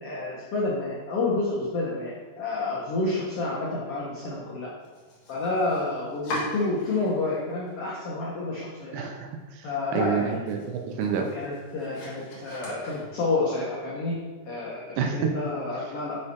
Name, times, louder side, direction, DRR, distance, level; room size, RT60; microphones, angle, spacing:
voice 1, 0.0-4.7 5.3-9.0 9.6-10.3 11.3-14.2 14.4-16.2, left 2 dB, 85° left, -5 dB, 1.3 m, -29 dB
Domestic sounds home sounds, 4.8-7.3 7.7-8.4 8.8-8.9 9.3-9.4 9.8-13.5, left 1 dB, 50° left, 2.6 m, -41 dB
voice 2, 8.9-11.3 15.0-15.3, right 6 dB, 80° right, 3 dB, 2.2 m, -28 dB
8.3 x 5.6 x 2.9 m, 1.4 s
omnidirectional pair, 4.2 m